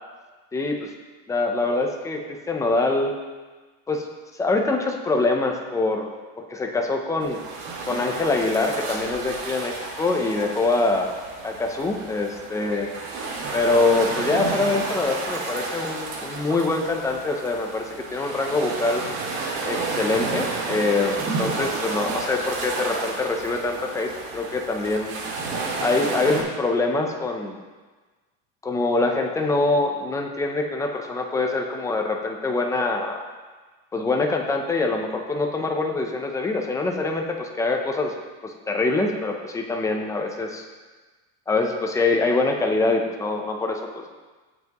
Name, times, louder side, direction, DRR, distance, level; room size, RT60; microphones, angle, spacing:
voice 1, 0.5-0.9 1.3-3.1 3.9-4.1 4.4-6.1 6.4-7.4 7.9-11.1 11.4-12.9 13.5-19.0 19.7-25.2 25.8-27.6 28.6-33.3 33.9-38.1 38.4-40.6 41.5-44.1, left 3 dB, 10° left, 2 dB, 0.5 m, -24 dB
sound 1, 7.2-26.4, right 3 dB, 70° right, 2.5 m, -31 dB
16.5 x 5.8 x 2.9 m, 1.3 s
cardioid pair, 175°, 34 cm